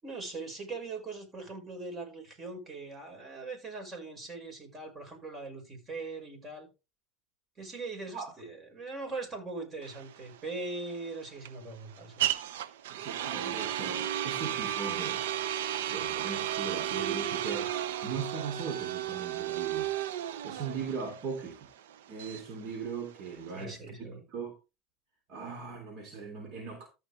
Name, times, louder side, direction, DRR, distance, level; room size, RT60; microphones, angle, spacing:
voice 1, 0.0-6.7 7.6-12.3 23.5-24.3, right 3 dB, 30° right, 5.7 m, -41 dB
sound 1, 9.8-23.6, right 11 dB, 85° right, 0.8 m, -34 dB
voice 2, 12.9-15.3 15.9-17.7 18.0-19.9 20.4-21.6 22.1-23.9 24.3-24.6 25.3-26.9, right 5 dB, 55° right, 3.4 m, -39 dB
14.0 x 5.8 x 3.5 m
supercardioid pair, 110°, 0 cm